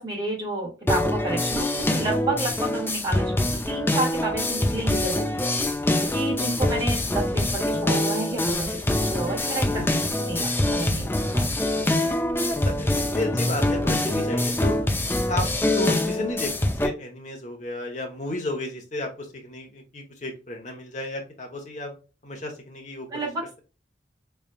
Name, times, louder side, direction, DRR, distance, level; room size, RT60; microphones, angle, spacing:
voice 1, 0.0-5.3 6.1-9.8 10.2-11.5 11.7-11.8 23.1-23.4, right 2 dB, 20° right, -4 dB, 2.1 m, -30 dB
sound 1, 0.9-16.9, left 1 dB, 10° left, 0.5 m, -24 dB
voice 2, 9.7-10.1 12.1-14.8 15.1-22.0 22.2-23.3, left 1 dB, 40° left, 2 dB, 1.1 m, -33 dB
4.0 x 3.4 x 2.3 m, 0.32 s
head